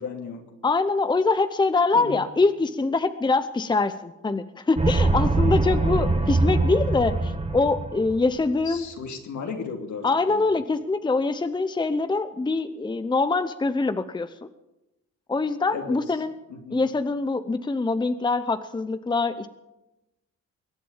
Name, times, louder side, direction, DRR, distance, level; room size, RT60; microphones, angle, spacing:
voice 1, 0.0-0.5 1.9-2.2 5.9-6.6 8.6-10.6 15.7-16.0 16.5-16.8, left 5 dB, 70° left, 3 dB, 2.8 m, -36 dB
voice 2, 0.6-8.8 10.0-14.5 15.3-16.3 16.7-19.5, left 3 dB, 15° left, 11 dB, 0.8 m, -24 dB
sound 1, 4.8-8.3, right 3 dB, 20° right, 1.6 m, -23 dB
22.0 x 8.3 x 7.4 m, 0.97 s
cardioid pair, 90°, 30 cm